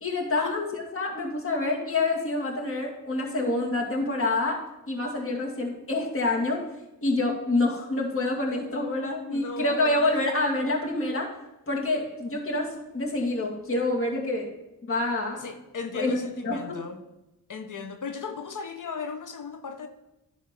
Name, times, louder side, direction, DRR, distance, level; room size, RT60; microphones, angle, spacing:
voice 1, 0.0-4.6 4.9-6.6 7.0-11.3 11.7-14.5 14.8-15.5 15.9-16.6, left 2 dB, 35° left, -1 dB, 2.3 m, -27 dB
voice 2, 9.2-10.0 15.4-17.0 17.5-19.9, left 4 dB, 55° left, 8 dB, 1.0 m, -36 dB
10.5 x 3.6 x 6.7 m, 0.94 s
cardioid pair, 60°, 37 cm